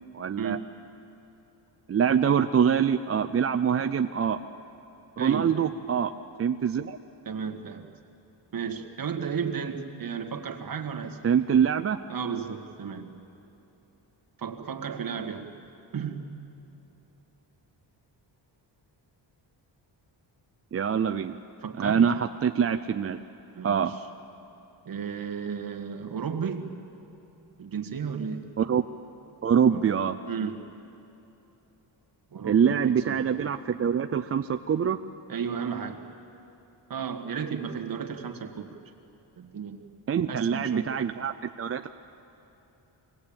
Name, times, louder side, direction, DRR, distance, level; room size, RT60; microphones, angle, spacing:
voice 1, 0.1-0.6 1.9-4.4 5.2-6.1 6.4-7.0 11.2-12.0 20.7-21.4 21.8-23.2 23.6-23.9 28.6-28.8 29.4-30.2 32.4-35.0 40.1-41.9, right 7 dB, 35° right, 8 dB, 0.4 m, -24 dB
voice 2, 5.2-5.6 7.3-7.9 8.5-11.2 12.1-13.1 14.4-15.5 15.9-16.3 21.6-22.1 23.5-24.0 24.9-26.7 27.6-28.5 29.7-29.9 30.3-30.6 32.3-33.3 35.3-36.0 36.9-38.8 39.4-39.9 40.3-40.9, right 6 dB, 50° right, 4 dB, 1.8 m, -33 dB
24.5 x 18.5 x 8.7 m, 3.0 s
wide cardioid pair, 155°, 44 cm